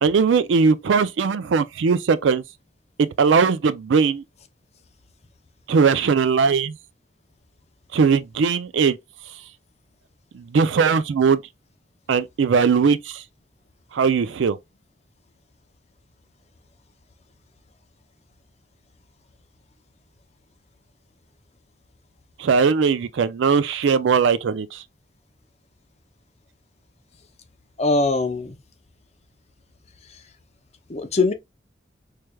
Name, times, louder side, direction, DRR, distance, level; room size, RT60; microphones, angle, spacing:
voice 1, 0.0-2.4 3.0-4.2 5.7-6.8 7.9-9.0 10.3-11.4 12.1-13.2 13.9-14.6 22.4-24.8, right 5 dB, 90° right, 0.4 m, -19 dB
voice 2, 27.8-28.6 30.9-31.3, left 3 dB, 35° left, 0.6 m, -21 dB
4.5 x 3.2 x 2.2 m
head